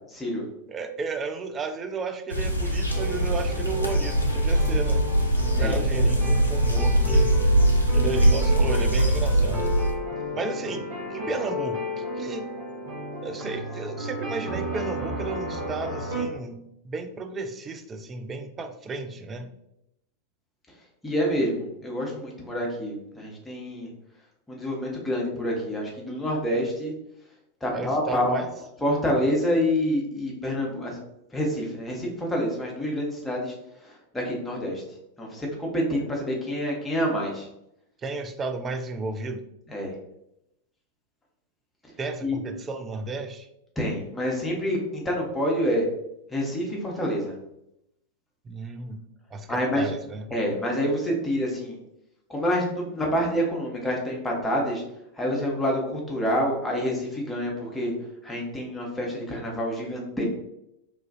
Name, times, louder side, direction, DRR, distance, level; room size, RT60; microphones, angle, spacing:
voice 1, 0.1-0.4 5.6-5.8 21.0-23.9 24.5-26.9 27.6-31.0 31.3-33.5 33.8-34.8 35.2-37.5 39.7-39.9 42.2-42.4 43.8-45.9 46.3-47.3 49.5-49.9 50.3-51.8 52.3-54.8 55.1-57.9 58.2-60.3, equal, 10° left, -2 dB, 0.8 m, -27 dB
voice 2, 0.7-5.0 5.6-7.4 7.9-9.7 10.3-12.5 13.2-19.5 27.7-28.5 38.0-39.4 42.0-43.5 48.5-49.0 49.3-50.2, right 3 dB, 20° right, 7 dB, 0.3 m, -33 dB
sound 1, 2.3-9.9, right 1 dB, 85° left, 0.4 m, -22 dB
sound 2, 2.9-16.2, left 1 dB, 70° right, 1.4 m, -33 dB
3.1 x 2.4 x 2.5 m, 0.82 s
figure-of-eight pair, 90°, 0 cm